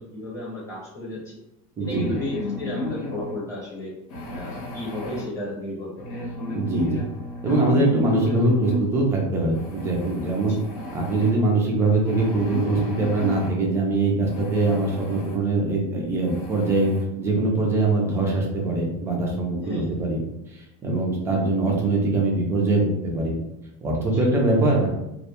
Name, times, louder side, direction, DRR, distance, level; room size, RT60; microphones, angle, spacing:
voice 1, 0.0-1.4 1.8-3.9 4.3-5.9 10.4-10.6 19.6-19.9 24.1-24.3, left 1 dB, 15° left, -5 dB, 0.8 m, -33 dB
sound 1, 1.8-3.4 4.1-5.2 6.0-8.8 9.5-11.3 12.0-13.5 14.2-15.4 15.8-15.9 16.2-17.0, left 2 dB, 85° left, 0.8 m, -33 dB
voice 2, 1.8-2.1 6.5-7.0 7.4-10.6 10.9-16.9 17.2-20.2 20.5-23.3 23.8-24.9, right 2 dB, 15° right, -1 dB, 0.3 m, -22 dB
2.1 x 2.1 x 2.8 m, 0.84 s
supercardioid pair, 170°, 18 cm